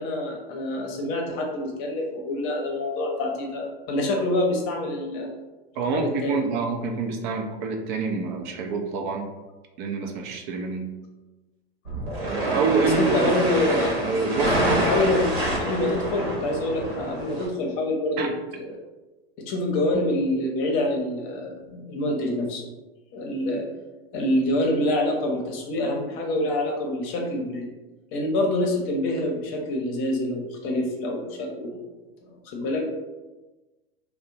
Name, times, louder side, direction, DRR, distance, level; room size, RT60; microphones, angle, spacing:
voice 1, 0.0-5.3 5.9-6.4 13.0-14.2 14.6-18.3 18.5-18.8 19.4-22.6 23.1-23.7 24.1-27.7 28.1-31.8 32.2-32.8, left 1 dB, 45° left, 0 dB, 0.7 m, -26 dB
voice 2, 5.8-9.3 9.8-10.9 12.2-13.3 14.0-14.9 18.2-18.3, right 4 dB, 50° right, 3 dB, 0.5 m, -27 dB
sound 1, 11.8-17.5, right 1 dB, 85° right, 0.9 m, -27 dB
2.4 x 2.1 x 2.8 m, 1.1 s
hypercardioid pair, 95°, 30 cm